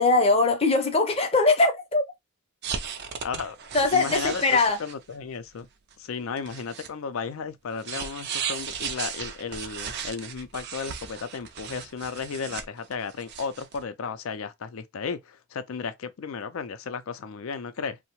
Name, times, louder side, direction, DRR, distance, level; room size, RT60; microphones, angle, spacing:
voice 1, 0.0-2.0 3.7-4.8, left 3 dB, 25° left, 0.6 m, -21 dB
sound 1, 2.6-5.0 5.6-5.7 5.9-6.0 6.4-6.9 7.8-13.8, right 7 dB, 50° right, 0.4 m, -36 dB
voice 2, 3.2-3.6 3.9-5.7 6.0-18.0, left 5 dB, 70° left, 0.4 m, -34 dB
2.7 x 2.1 x 2.9 m
head